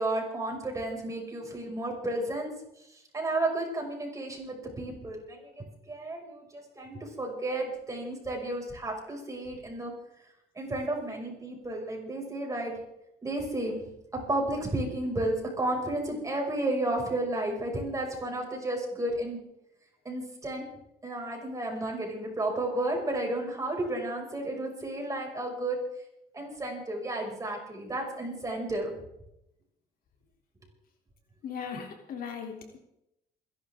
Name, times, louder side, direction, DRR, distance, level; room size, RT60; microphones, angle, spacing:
voice 1, 0.0-2.5 2.9-9.9 10.5-12.7 13.2-13.8 14.1-19.4 20.0-20.6 21.0-25.8 26.3-28.9, right 1 dB, 20° right, 0 dB, 6.5 m, -32 dB
voice 2, 31.4-32.8, left 6 dB, 60° left, 2 dB, 3.5 m, -38 dB
28.0 x 11.5 x 3.8 m, 0.80 s
cardioid pair, 110°, 17 cm